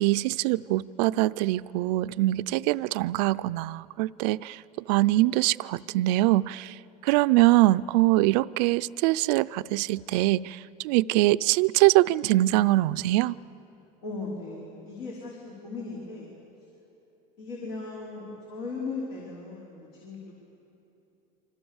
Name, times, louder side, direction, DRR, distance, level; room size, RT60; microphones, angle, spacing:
voice 1, 0.0-4.6 4.9-13.4, right 18 dB, 85° right, 0.5 m, -23 dB
voice 2, 14.0-16.3 17.4-20.3, left 3 dB, 80° left, 5.0 m, -37 dB
28.0 x 25.5 x 7.2 m
cardioid pair, 130°, 21 cm